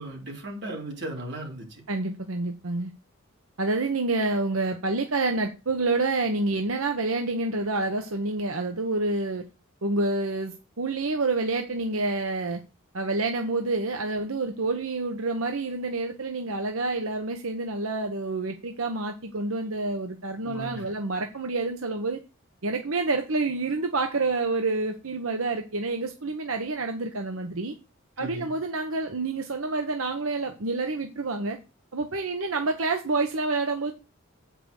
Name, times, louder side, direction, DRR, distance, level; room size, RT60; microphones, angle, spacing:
voice 1, 0.0-1.8 20.4-20.8 28.2-28.5, right 1 dB, 55° right, 4.1 m, -36 dB
voice 2, 1.9-2.9 3.6-9.4 9.8-12.6 12.9-22.2 22.6-27.7 28.2-31.6 31.9-33.9, right 3 dB, 85° right, 1.1 m, -28 dB
8.4 x 5.9 x 6.5 m
head